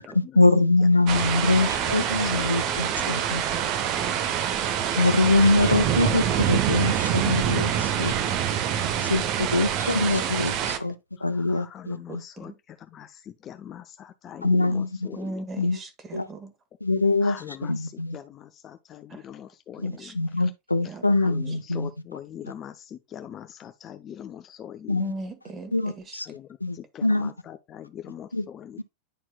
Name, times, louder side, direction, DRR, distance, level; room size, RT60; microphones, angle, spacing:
voice 1, 0.1-3.4 5.0-8.2 9.1-10.9 11.2-12.2 14.4-15.1 15.6-15.8 16.1-16.3 16.8-18.2 19.8-21.9 24.9-25.1 25.7-26.3 26.6-27.3 28.3-28.4 28.8-28.9, left 2 dB, 85° left, 0.5 m, -23 dB
voice 2, 1.0-3.6 11.2-15.4 17.2-20.2 21.2-25.0 26.3-26.5 26.7-28.8, left 10 dB, 30° left, 0.5 m, -42 dB
sound 1, 1.1-10.8, right 9 dB, 40° right, 0.7 m, -26 dB
voice 3, 3.5-4.9 8.7-10.7 12.1-12.6 15.2-16.5 19.1-19.3 19.8-20.1 20.8-21.1 21.5-21.6 25.0-26.2, right 3 dB, 20° right, 1.5 m, -40 dB
10.0 x 4.4 x 2.3 m
figure-of-eight pair, 90°, 0 cm